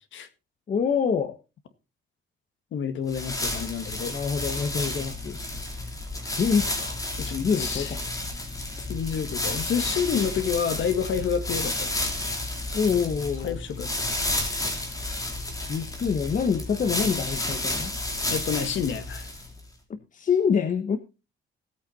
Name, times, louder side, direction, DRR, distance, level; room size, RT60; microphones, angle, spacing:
voice 1, 0.7-1.4 4.1-5.4 6.3-7.0 7.4-8.2 12.7-13.6 15.7-17.9 19.9-21.0, left 6 dB, 40° left, 1.0 m, -26 dB
voice 2, 2.7-4.1 7.2-8.0 8.9-11.9 13.4-14.0 18.3-19.3, left 7 dB, 75° left, 1.8 m, -29 dB
sound 1, 3.1-19.6, left 2 dB, 15° left, 3.2 m, -31 dB
16.5 x 8.8 x 4.0 m
wide cardioid pair, 160°, 20 cm